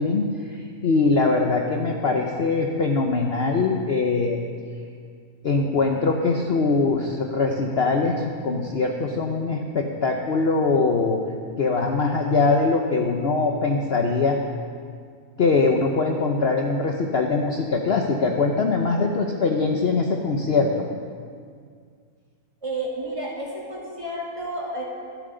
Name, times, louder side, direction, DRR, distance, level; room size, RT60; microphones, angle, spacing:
voice 1, 0.0-4.4 5.4-11.2 11.6-14.4 15.4-20.7, left 3 dB, 50° left, 2 dB, 0.9 m, -22 dB
voice 2, 22.6-24.8, right 1 dB, 20° right, -5 dB, 2.8 m, -31 dB
25.0 x 8.3 x 3.9 m, 2.1 s
omnidirectional pair, 1.7 m